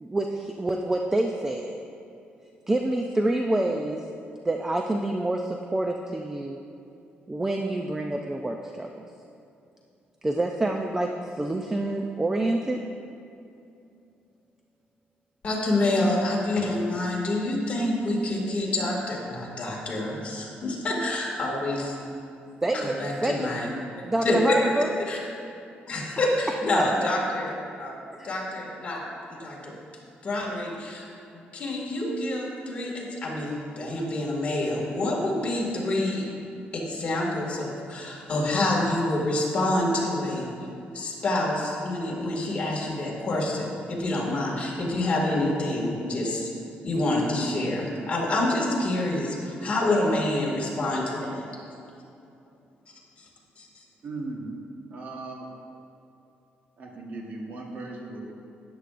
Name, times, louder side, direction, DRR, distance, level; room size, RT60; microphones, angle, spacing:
voice 1, 0.0-1.8 2.7-4.1 4.4-6.6 7.3-9.0 10.2-12.8 22.6-22.9 23.2-23.5 24.0-24.9 26.7-26.9 28.2-28.3, right 1 dB, 10° right, 3 dB, 0.4 m, -27 dB
voice 2, 15.4-21.9 22.7-23.7 24.2-24.4 25.1-25.2 25.9-28.0 28.2-29.0 29.3-29.7 30.2-31.1 31.3-36.2 36.7-40.5 40.9-46.5 46.8-51.4 53.2-53.3 53.6-53.7, left 1 dB, 35° left, -4 dB, 2.1 m, -27 dB
voice 3, 54.0-54.6 54.9-55.5 56.8-58.3, right 2 dB, 50° right, 0 dB, 1.3 m, -37 dB
13.0 x 9.5 x 2.5 m, 2.7 s
cardioid pair, 155°, 4 cm